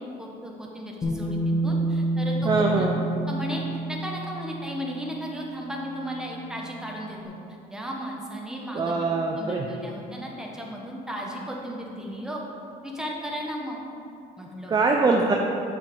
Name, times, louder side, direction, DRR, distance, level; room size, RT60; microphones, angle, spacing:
voice 1, 0.2-2.9 3.3-7.3 7.7-9.0 9.4-12.4 12.8-13.8 14.4-14.8, equal, 5° right, -2 dB, 1.0 m, -35 dB
Bass guitar, 1.0-7.1, right 1 dB, 25° left, 1.3 m, -29 dB
voice 2, 2.5-3.0 8.7-9.7 14.7-15.4, right 3 dB, 25° right, 1 dB, 0.5 m, -22 dB
7.1 x 5.1 x 3.7 m, 2.7 s
cardioid pair, 110°, 17 cm